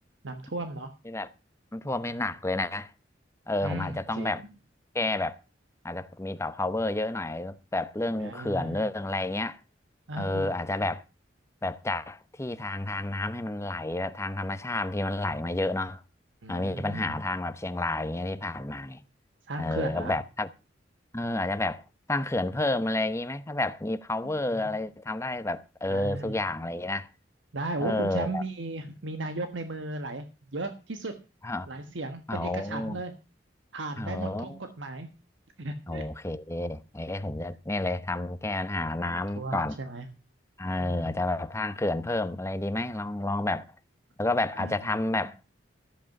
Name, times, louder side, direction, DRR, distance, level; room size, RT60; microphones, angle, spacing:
voice 1, 0.2-0.9 3.6-4.3 8.2-8.9 10.1-10.6 16.4-17.2 19.5-20.2 24.5-24.6 25.9-26.4 27.5-30.3 30.5-31.1 31.7-33.1 33.7-35.1 35.6-36.0 39.1-40.1 40.8-41.1 44.5-44.9, right 2 dB, 80° right, 1.3 m, -36 dB
voice 2, 1.7-2.9 3.5-4.4 4.9-5.4 5.8-9.6 10.1-11.0 11.6-16.0 16.5-19.0 19.6-20.5 21.1-21.8 22.1-27.1 27.8-28.4 31.4-31.7 32.3-33.0 34.0-34.6 35.9-39.8 40.6-43.6 44.2-45.4, left 2 dB, 15° left, 0.8 m, -30 dB
14.0 x 8.1 x 5.9 m
head